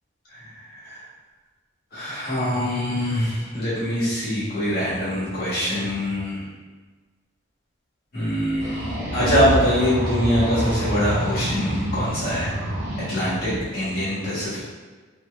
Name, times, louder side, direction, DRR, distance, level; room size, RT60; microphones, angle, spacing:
voice 1, 1.9-6.4 8.1-12.5 13.0-14.6, equal, 50° left, -10 dB, 1.4 m, -24 dB
sound 1, 8.6-13.6, right 1 dB, 60° right, 0.7 m, -27 dB
2.9 x 2.7 x 3.3 m, 1.4 s
head